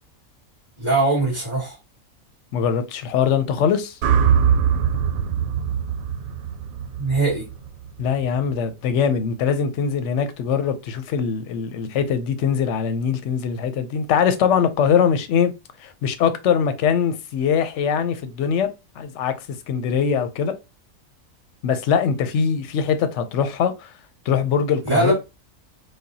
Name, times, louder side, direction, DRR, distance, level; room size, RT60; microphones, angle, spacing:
voice 1, 0.8-1.8 7.0-7.4 24.8-25.1, right 2 dB, 35° right, 2.3 m, -21 dB
voice 2, 2.5-4.0 8.0-15.5 15.8-18.7 19.0-19.3 19.7-20.5 21.6-23.9 24.3-25.1, left 7 dB, 65° left, 0.9 m, -22 dB
sound 1, 4.0-8.2, right 7 dB, 80° right, 1.1 m, -22 dB
4.9 x 2.3 x 2.7 m
omnidirectional pair, 1.4 m